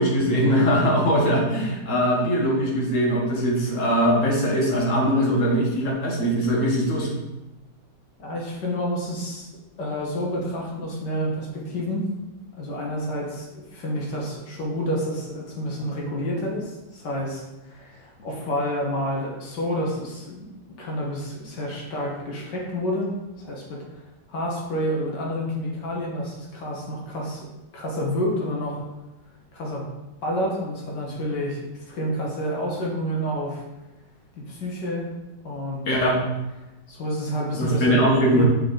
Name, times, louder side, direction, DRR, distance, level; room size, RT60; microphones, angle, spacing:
voice 1, 0.0-7.1 35.9-36.2 37.5-38.4, equal, 50° left, -1 dB, 1.5 m, -21 dB
voice 2, 8.2-9.5 9.8-12.1 12.6-20.5 20.8-23.8 24.3-27.5 27.7-28.8 29.5-29.8 30.2-33.6 34.5-35.1 35.4-35.8 36.9-38.4, equal, 90° left, -2 dB, 2.1 m, -29 dB
6.3 x 4.2 x 3.9 m, 1.0 s
omnidirectional pair, 1.8 m